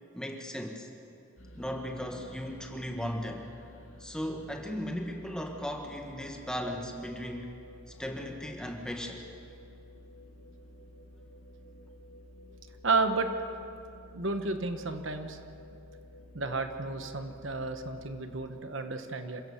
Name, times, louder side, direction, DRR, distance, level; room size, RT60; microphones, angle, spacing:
voice 1, 0.1-0.9 1.5-3.4 4.0-7.5 7.9-9.2, equal, 5° left, 2 dB, 1.7 m, -37 dB
sound 1, 1.4-18.2, left 1 dB, 65° left, 2.5 m, -52 dB
voice 2, 12.8-13.3 14.1-15.4 16.3-19.4, right 3 dB, 55° right, 7 dB, 1.3 m, -31 dB
27.5 x 16.5 x 7.2 m, 2.6 s
head